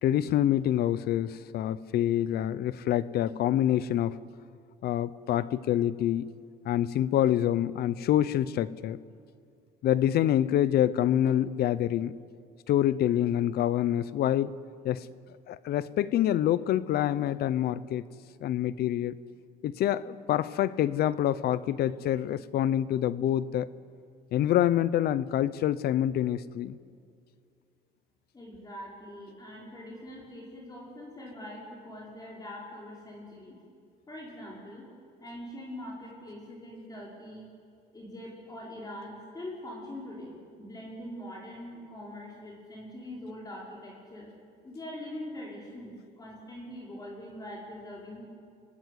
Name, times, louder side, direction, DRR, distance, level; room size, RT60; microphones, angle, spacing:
voice 1, 0.0-4.2 4.8-6.3 6.6-9.0 9.8-12.2 12.7-14.5 14.8-15.1 15.5-18.0 18.4-19.2 19.6-23.7 24.3-26.8, left 11 dB, 70° left, 18 dB, 0.8 m, -26 dB
voice 2, 28.3-33.6 34.1-34.9 35.2-37.5 37.9-44.3 44.6-48.2, left 1 dB, 20° left, -3 dB, 5.6 m, -43 dB
26.0 x 18.5 x 9.6 m, 2.3 s
cardioid pair, 110°, 17 cm